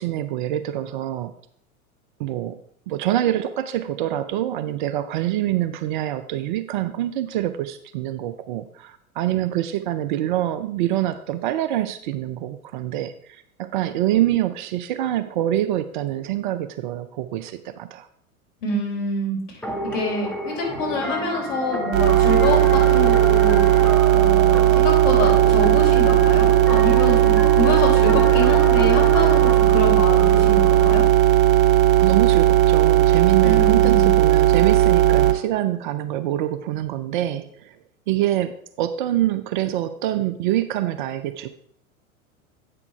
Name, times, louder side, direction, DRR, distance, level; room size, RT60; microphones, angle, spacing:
voice 1, 0.0-1.3 2.2-2.6 2.9-18.1 32.0-37.8 38.1-41.5, right 13 dB, 35° right, 11 dB, 0.4 m, -25 dB
voice 2, 18.6-19.6 19.9-31.0 33.4-34.1, left 1 dB, 60° left, -3 dB, 4.0 m, -26 dB
sound 1, 19.6-30.9, equal, 5° left, 0.9 m, -30 dB
sound 2, 21.9-35.3, right 13 dB, 70° right, 1.0 m, -16 dB
8.3 x 6.0 x 4.5 m, 0.69 s
figure-of-eight pair, 95°, 43 cm